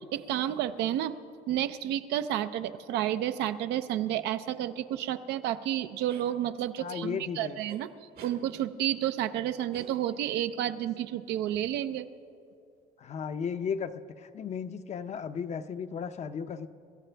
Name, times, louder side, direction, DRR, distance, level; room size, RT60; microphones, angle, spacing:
voice 1, 0.1-1.1 1.5-7.9 8.2-12.1, right 11 dB, 85° right, 10 dB, 0.6 m, -31 dB
sound 1, 6.1-6.3 7.7-7.8 8.2-8.4 9.7-10.4, right 7 dB, 65° right, 1.2 m, -48 dB
voice 2, 6.8-7.6 13.0-16.7, left 6 dB, 40° left, 11 dB, 0.6 m, -35 dB
26.5 x 13.5 x 3.4 m, 2.5 s
cardioid pair, 110°, 17 cm